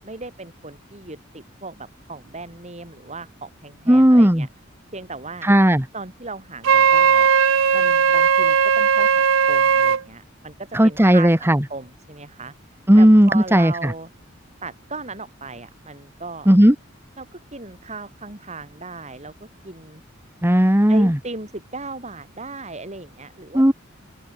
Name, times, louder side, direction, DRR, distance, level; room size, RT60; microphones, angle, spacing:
voice 1, 0.0-4.5 4.9-5.5 5.9-7.3 7.7-12.5 13.0-14.1 14.6-16.5 17.2-20.0 20.9-23.7, right 3 dB, 35° right, 7.0 m, -37 dB
voice 2, 3.9-4.5 5.4-5.9 10.7-11.6 12.9-13.9 16.4-16.7 20.4-21.2 23.5-23.7, equal, 10° right, 1.6 m, -14 dB
Wind instrument woodwind instrument, 6.6-10.0, right 6 dB, 75° right, 0.7 m, -17 dB
open air
head